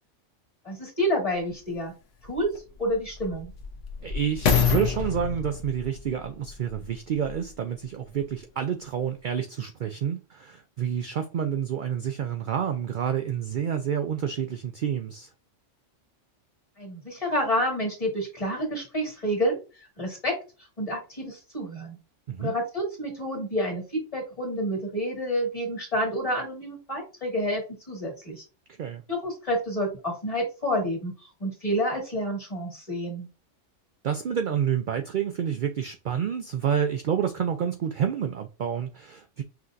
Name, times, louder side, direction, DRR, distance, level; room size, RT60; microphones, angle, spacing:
voice 1, 0.6-1.9 2.2-2.5 2.8-3.5 16.8-19.6 20.0-20.4 20.8-22.0 22.4-28.4 29.1-31.1 31.4-33.3, equal, 30° left, 2.0 m, -29 dB
sound 1, 1.4-1.5 2.2-7.5 8.2-8.3, left 6 dB, 75° left, 1.2 m, -28 dB
voice 2, 4.0-15.3 22.3-22.5 28.8-29.0 34.0-39.4, right 8 dB, 60° right, 0.5 m, -29 dB
5.8 x 2.9 x 2.5 m
omnidirectional pair, 1.3 m